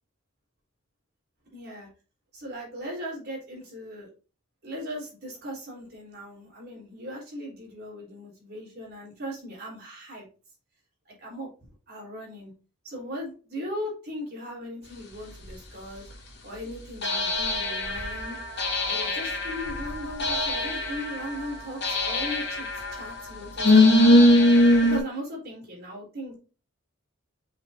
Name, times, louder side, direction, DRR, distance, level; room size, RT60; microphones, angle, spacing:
voice 1, 1.5-1.9 2.3-4.1 4.6-10.2 11.1-12.5 12.8-16.1 16.4-22.7 22.9-24.2 24.8-26.4, equal, 45° right, -3 dB, 3.7 m, -38 dB
sound 1, 15.4-15.5 17.0-25.0, left 1 dB, 50° left, 2.2 m, -22 dB
6.4 x 6.0 x 2.7 m, 0.35 s
head